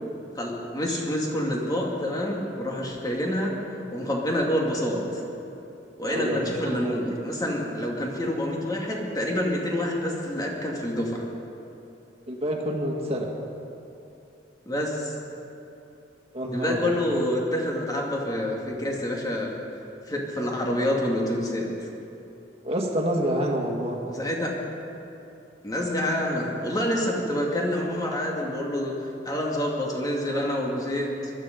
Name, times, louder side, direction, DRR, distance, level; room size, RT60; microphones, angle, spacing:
voice 1, 0.3-3.5 3.9-5.2 6.0-11.3 14.7-15.1 16.5-19.5 20.1-21.7 24.1-24.5 25.6-31.3, left 1 dB, 20° left, -1 dB, 2.4 m, -27 dB
voice 2, 6.1-7.0 12.3-13.3 16.3-16.8 22.6-24.0, equal, 35° right, 0 dB, 2.1 m, -28 dB
21.0 x 13.0 x 5.3 m, 2.8 s
head